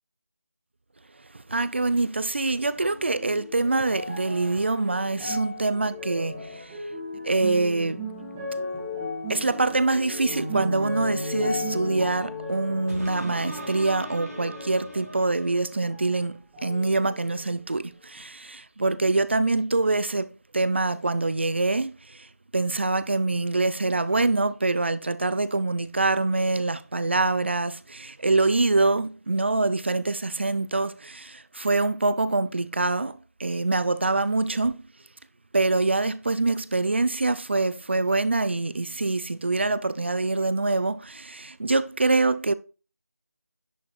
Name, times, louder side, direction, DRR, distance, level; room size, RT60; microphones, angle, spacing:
voice 1, 1.3-6.9 7.2-8.0 9.3-34.8 35.5-42.5, right 3 dB, 45° right, 0.5 m, -25 dB
sound 1, 2.7-16.2 16.5-17.5 18.2-18.3, left 1 dB, 10° right, 1.4 m, -35 dB
sound 2, 12.9-15.8 16.3-16.4, right 1 dB, 65° right, 3.0 m, -41 dB
10.5 x 4.8 x 3.1 m
figure-of-eight pair, 170°, 9 cm